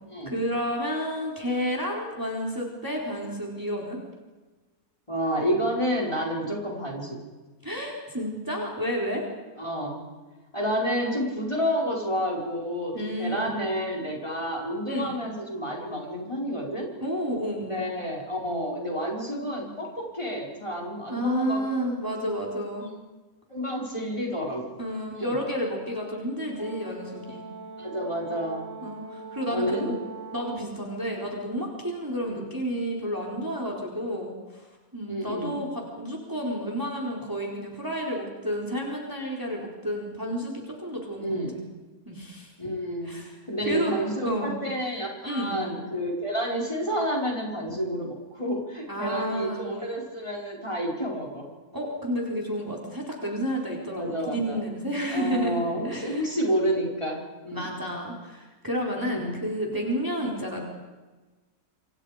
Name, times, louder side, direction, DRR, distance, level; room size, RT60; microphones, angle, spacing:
voice 1, 0.3-4.0 7.6-9.2 12.9-13.6 14.9-15.1 17.0-17.8 21.1-22.9 24.8-27.4 28.8-30.0 30.3-34.6 34.9-41.6 42.1-42.5 43.1-43.3 43.7-43.9 44.2-44.5 45.2-45.6 48.9-49.7 51.7-56.3 57.5-60.6, equal, 10° right, -2 dB, 4.3 m, -31 dB
voice 2, 5.1-7.2 9.6-10.0 10.5-16.9 17.6-21.9 23.5-24.7 25.1-25.4 27.8-28.7 29.5-29.9 32.3-32.4 35.1-35.6 41.2-41.6 42.6-43.2 43.5-51.5 53.9-54.6 55.1-57.7 59.0-59.4, equal, 20° left, -2 dB, 4.9 m, -30 dB
Brass instrument, 26.6-30.8, right 3 dB, 50° left, 5.3 m, -42 dB
28.0 x 27.0 x 5.1 m, 1.2 s
omnidirectional pair, 1.6 m